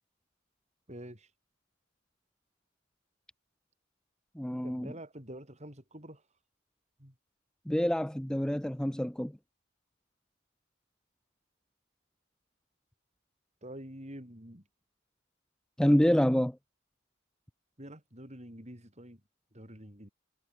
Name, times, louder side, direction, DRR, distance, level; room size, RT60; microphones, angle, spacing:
voice 1, 0.9-1.3 4.6-6.2 7.0-7.2 13.6-14.6 17.8-19.2 19.5-20.1, right 1 dB, 30° right, 7.9 m, -47 dB
voice 2, 4.4-4.9 7.7-9.3 15.8-16.6, equal, 5° left, 0.4 m, -27 dB
head